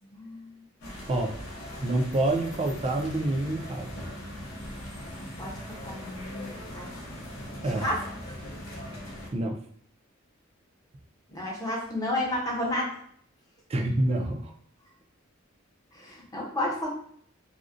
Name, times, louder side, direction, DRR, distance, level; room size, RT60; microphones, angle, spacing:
voice 1, 0.0-0.5 5.2-6.9 7.7-8.0 11.3-12.9 15.9-16.9, left 1 dB, 20° left, -3 dB, 0.6 m, -32 dB
sound 1, 0.8-9.3, left 1 dB, 85° left, 0.6 m, -40 dB
voice 2, 1.8-3.9 7.6-7.9 9.3-9.6 13.7-14.5, right 1 dB, 30° right, 2 dB, 0.3 m, -27 dB
2.4 x 2.0 x 2.5 m, 0.62 s
head